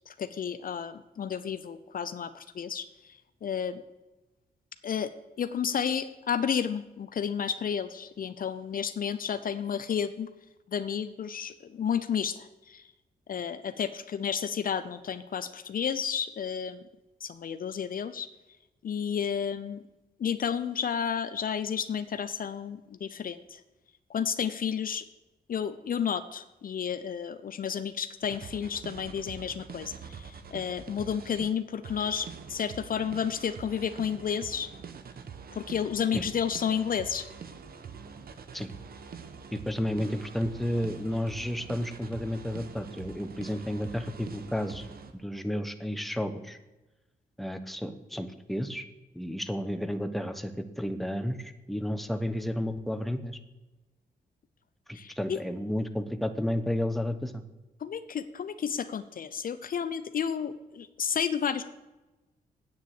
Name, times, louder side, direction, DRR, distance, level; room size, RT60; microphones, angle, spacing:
voice 1, 0.1-2.9 3.4-3.8 4.8-5.1 5.4-10.3 10.7-12.8 13.3-16.8 17.2-18.3 18.8-19.8 20.2-23.6 24.1-25.1 25.5-34.7 35.5-37.3 54.9-55.4 57.8-61.6, left 7 dB, 55° left, 12 dB, 0.6 m, -31 dB
sound 1, 28.2-31.5 31.8-45.1, right 6 dB, 65° right, 1.1 m, -45 dB
voice 2, 39.5-46.6 47.4-48.8 49.1-53.4 54.9-57.4, left 1 dB, ahead, 9 dB, 1.0 m, -32 dB
8.7 x 7.3 x 7.6 m, 1.1 s
cardioid pair, 65°, 17 cm